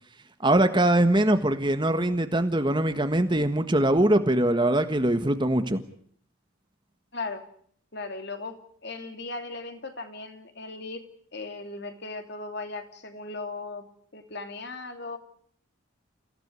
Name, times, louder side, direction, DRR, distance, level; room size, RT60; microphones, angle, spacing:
voice 1, 0.4-5.8, right 1 dB, 20° right, 9 dB, 1.5 m, -22 dB
voice 2, 7.1-7.4 7.9-11.0 11.3-13.8 14.1-15.2, left 3 dB, 50° left, 7 dB, 2.9 m, -37 dB
29.5 x 16.0 x 9.7 m, 0.63 s
head